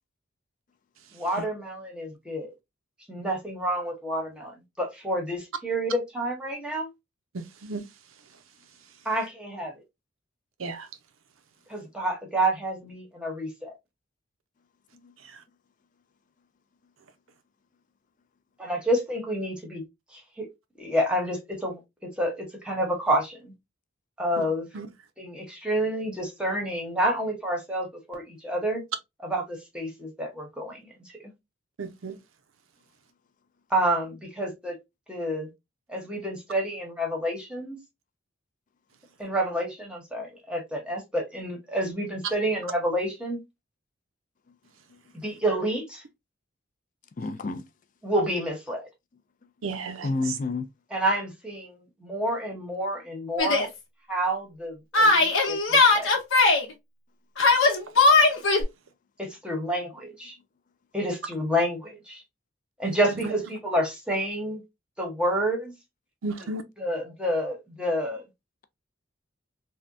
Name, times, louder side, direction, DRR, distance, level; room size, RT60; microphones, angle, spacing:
voice 1, 1.1-2.5 3.1-4.5 4.8-6.9 9.0-9.7 11.7-13.7 18.6-19.8 20.1-20.5 20.8-21.8 22.2-23.5 24.2-24.7 25.2-28.8 29.2-30.8 31.1-31.2 33.7-34.7 35.1-35.5 35.9-37.8 39.2-43.4 45.2-46.0 48.0-48.9 50.9-53.7 54.1-56.1 59.2-60.1 60.9-62.2 62.8-64.6 65.0-65.7 66.8-68.2, right 1 dB, 5° right, 0.9 m, -29 dB
voice 2, 7.3-7.8 10.6-10.8 24.7-24.9 31.8-32.2 49.6-50.1 62.8-62.9 66.2-66.6, right 3 dB, 85° right, 0.6 m, -33 dB
voice 3, 47.2-47.6 50.0-50.7, left 3 dB, 40° left, 0.4 m, -29 dB
Yell, 53.4-53.7 54.9-56.6 57.4-58.6, left 3 dB, 80° left, 0.9 m, -19 dB
3.5 x 2.2 x 2.5 m
head